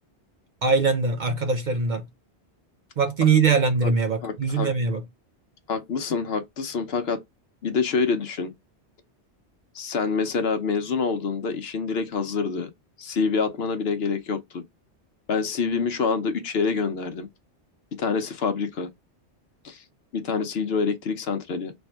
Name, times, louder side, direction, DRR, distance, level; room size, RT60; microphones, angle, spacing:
voice 1, 0.6-2.0 3.0-5.0, right 4 dB, 50° right, 0.6 m, -22 dB
voice 2, 4.2-4.7 5.7-7.2 7.6-8.5 9.7-12.7 13.0-14.6 15.3-17.3 18.0-18.9 19.6-19.8 20.1-21.7, left 5 dB, 65° left, 0.9 m, -26 dB
3.5 x 3.2 x 4.3 m
omnidirectional pair, 1.2 m